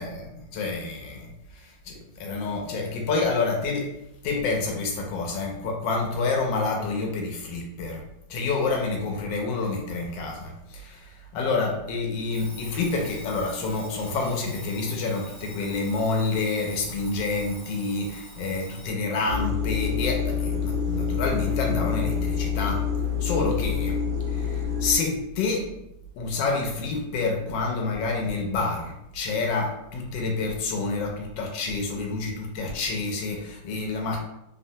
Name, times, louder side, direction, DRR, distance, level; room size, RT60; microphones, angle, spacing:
voice 1, 0.0-3.9 4.2-8.0 8.3-22.8 23.2-24.0 24.3-25.7 26.2-34.2, left 3 dB, 80° left, 0 dB, 1.3 m, -28 dB
Alarm, 12.3-19.0, equal, 40° right, 1.2 m, -46 dB
sound 1, 19.3-25.0, left 6 dB, 85° right, 1.3 m, -27 dB
3.3 x 2.1 x 2.7 m, 0.85 s
omnidirectional pair, 2.0 m